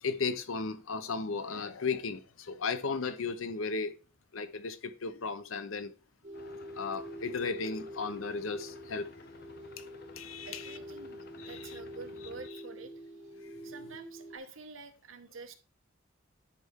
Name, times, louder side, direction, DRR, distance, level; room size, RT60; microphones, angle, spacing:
voice 1, 0.0-4.0 4.3-5.9 6.7-9.1 9.8-9.9 10.2-10.7 11.4-11.8 13.4-13.5, left 4 dB, 90° left, 0.8 m, -35 dB
sound 1, 6.2-14.4, equal, 40° right, 1.7 m, -46 dB
sound 2, 6.3-12.5, left 3 dB, 50° left, 0.7 m, -54 dB
voice 2, 10.4-12.9 13.6-15.5, right 4 dB, 80° right, 1.0 m, -48 dB
10.0 x 4.2 x 3.6 m
head